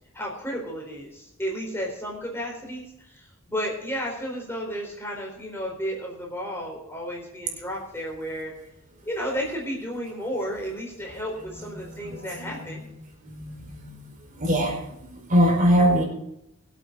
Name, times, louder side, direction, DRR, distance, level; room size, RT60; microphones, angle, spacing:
voice 1, 0.1-8.5 9.0-12.9, equal, 10° left, -1 dB, 4.1 m, -33 dB
voice 2, 13.2-13.9 14.4-14.8 15.1-16.0, equal, 40° right, 2 dB, 4.5 m, -21 dB
24.0 x 8.6 x 3.9 m, 0.83 s
head